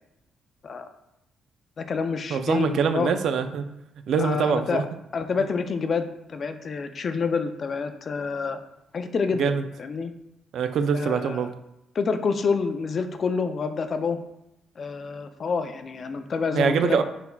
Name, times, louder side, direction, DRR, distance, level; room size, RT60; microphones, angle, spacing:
voice 1, 1.8-3.2 4.2-4.8 5.1-8.6 8.9-9.5 9.8-10.1 10.9-11.5 12.0-14.2 14.8-17.0, left 5 dB, 45° left, 8 dB, 0.3 m, -27 dB
voice 2, 2.3-3.7 4.1-4.8 9.3-9.6 10.5-11.5 16.5-17.0, right 6 dB, 70° right, 9 dB, 0.3 m, -24 dB
4.2 x 3.9 x 2.2 m, 0.85 s
cardioid pair, 90°, 0 cm